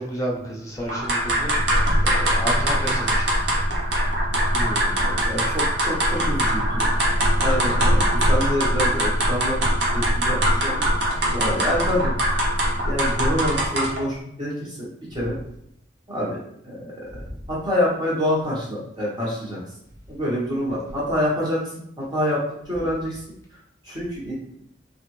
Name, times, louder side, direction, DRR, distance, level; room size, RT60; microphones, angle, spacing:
voice 1, 0.0-1.5 2.0-3.5 11.3-11.5 17.1-17.3, equal, 15° left, -3 dB, 0.6 m, -31 dB
sound 1, 0.9-14.1, equal, 60° right, 0.7 m, -22 dB
voice 2, 4.5-6.9 7.4-9.6 9.9-12.5 12.8-15.4 16.1-16.4 16.6-17.0 17.5-19.6 20.1-21.6 22.0-23.2 23.8-24.3, equal, 20° right, -6 dB, 1.1 m, -27 dB
3.2 x 2.5 x 3.1 m, 0.75 s
head